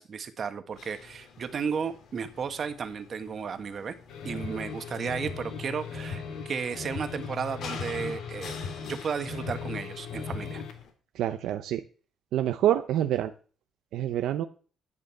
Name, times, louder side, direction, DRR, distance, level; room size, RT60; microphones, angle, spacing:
voice 1, 0.0-3.9 4.2-10.6, right 6 dB, 50° right, 8 dB, 1.5 m, -34 dB
sound 1, 0.7-10.9, left 5 dB, 70° left, 2.6 m, -48 dB
sound 2, 4.1-10.8, left 5 dB, 85° left, 2.1 m, -38 dB
voice 2, 11.1-11.8 12.3-13.3 13.9-14.5, right 11 dB, 85° right, 9 dB, 0.7 m, -26 dB
11.0 x 5.2 x 7.1 m, 0.39 s
cardioid pair, 90°, 0 cm